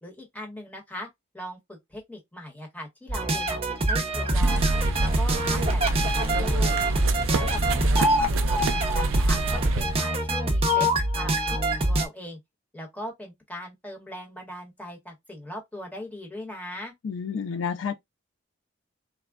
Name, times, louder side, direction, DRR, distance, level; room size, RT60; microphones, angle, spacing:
voice 1, 0.0-1.1 1.3-3.6 3.9-4.7 5.0-6.8 7.3-12.4 12.7-16.9, equal, 10° left, 1.0 m, -39 dB
sound 1, 3.1-12.1, right 1 dB, 30° right, 0.6 m, -25 dB
sound 2, 4.3-10.0, right 3 dB, 85° right, 0.4 m, -27 dB
voice 2, 17.0-17.9, left 6 dB, 75° left, 0.4 m, -30 dB
3.5 x 2.1 x 2.2 m
head